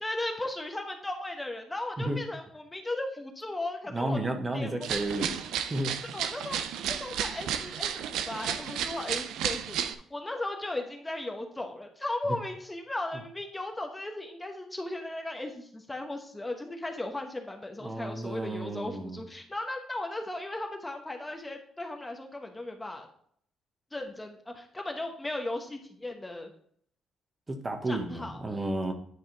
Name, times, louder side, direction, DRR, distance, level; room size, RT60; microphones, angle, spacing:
voice 1, 0.0-4.2 4.5-4.9 6.1-9.8 10.1-23.1 23.9-26.5 27.9-28.4, left 2 dB, 15° left, 3 dB, 1.1 m, -36 dB
voice 2, 3.9-5.3 5.7-5.9 17.8-19.2 27.5-28.9, right 1 dB, 25° right, 5 dB, 1.2 m, -32 dB
sound 1, 4.8-9.9, right 9 dB, 85° right, 0.5 m, -33 dB
9.7 x 3.6 x 4.6 m, 0.63 s
cardioid pair, 90°, 0 cm